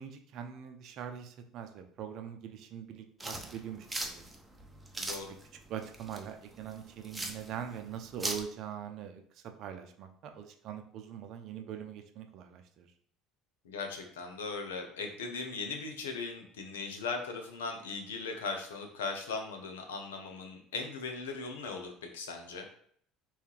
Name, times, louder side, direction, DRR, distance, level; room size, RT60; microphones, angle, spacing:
voice 1, 0.0-4.2 5.7-12.9, right 8 dB, 60° right, 6 dB, 0.6 m, -43 dB
sound 1, 3.2-8.4, right 2 dB, 15° right, 0.7 m, -40 dB
voice 2, 5.0-5.3 13.6-22.7, left 4 dB, 90° left, 4 dB, 0.6 m, -38 dB
3.3 x 3.1 x 3.3 m, 0.62 s
hypercardioid pair, 75°, 0 cm